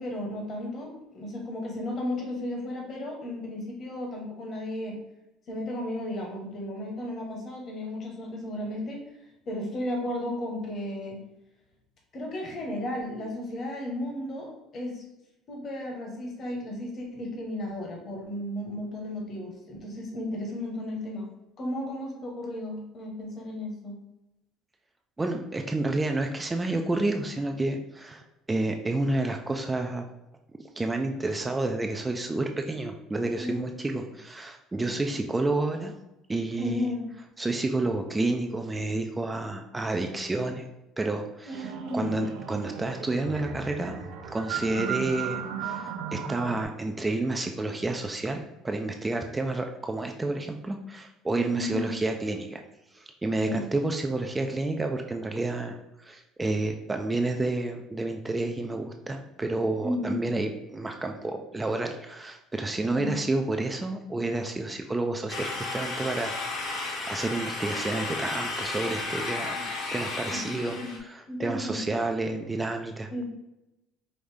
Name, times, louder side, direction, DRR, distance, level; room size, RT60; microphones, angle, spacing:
voice 1, 0.0-5.0 5.5-9.1 9.5-11.2 12.1-15.0 15.5-21.3 21.6-24.0 33.4-33.8 36.6-37.1 41.5-42.2 51.5-51.9 53.3-53.7 59.8-60.3 62.9-63.2 69.5-69.6 70.3-70.4 70.7-71.0 71.3-71.8 72.2-72.4 73.1-73.2, left 1 dB, 35° left, 0 dB, 1.1 m, -34 dB
voice 2, 25.2-30.1 30.8-35.9 36.3-36.8 37.4-40.7 41.0-44.0 44.3-52.6 52.9-66.3 66.8-69.6 69.9-70.7 71.0-73.1, right 2 dB, 10° right, 4 dB, 0.3 m, -30 dB
sound 1, 41.5-46.6, right 7 dB, 70° right, 0.6 m, -35 dB
sound 2, 65.3-71.0, left 3 dB, 60° left, 1.1 m, -33 dB
5.0 x 2.6 x 3.3 m, 0.94 s
cardioid pair, 150°, 0 cm